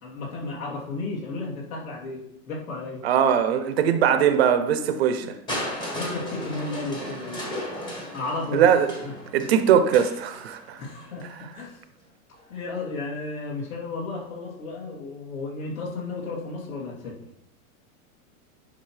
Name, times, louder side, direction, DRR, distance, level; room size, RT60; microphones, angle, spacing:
voice 1, 0.0-3.1 5.2-5.3 5.7-7.5 7.9-8.7 9.0-9.1 9.4-9.5 9.9-10.0 10.8-11.8 12.5-17.2, left 3 dB, 65° left, -4 dB, 3.0 m, -34 dB
voice 2, 3.0-5.3 8.5-8.9 9.3-10.8, right 8 dB, 45° right, 9 dB, 0.6 m, -20 dB
Crushing, 5.5-11.4 12.3-12.4, equal, 10° left, 1.0 m, -35 dB
10.0 x 5.4 x 3.2 m, 0.83 s
supercardioid pair, 170°, 44 cm